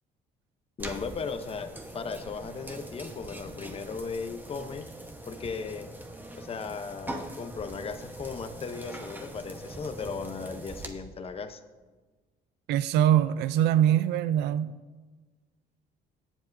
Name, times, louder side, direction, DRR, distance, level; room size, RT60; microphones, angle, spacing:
voice 1, 0.8-4.9 5.3-5.9 6.3-11.6, left 5 dB, 35° left, 9 dB, 0.7 m, -37 dB
sound 1, 0.8-10.9, right 1 dB, 10° right, 1.0 m, -42 dB
voice 2, 12.7-14.8, right 11 dB, 80° right, 13 dB, 0.4 m, -23 dB
21.0 x 7.3 x 2.6 m, 1.3 s
cardioid pair, 110°, 17 cm